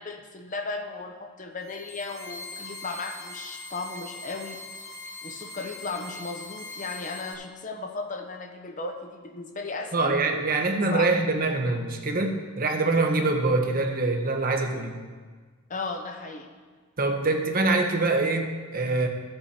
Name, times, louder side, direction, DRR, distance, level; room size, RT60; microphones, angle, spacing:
voice 1, 0.0-4.6 5.2-10.1 10.8-11.1 15.7-16.5, left 3 dB, 35° left, 5 dB, 0.9 m, -35 dB
sound 1, 1.6-7.3, left 2 dB, 80° left, 2.0 m, -41 dB
voice 2, 9.9-15.0 17.0-19.1, right 3 dB, 40° right, 4 dB, 1.1 m, -24 dB
13.5 x 7.9 x 4.3 m, 1.5 s
head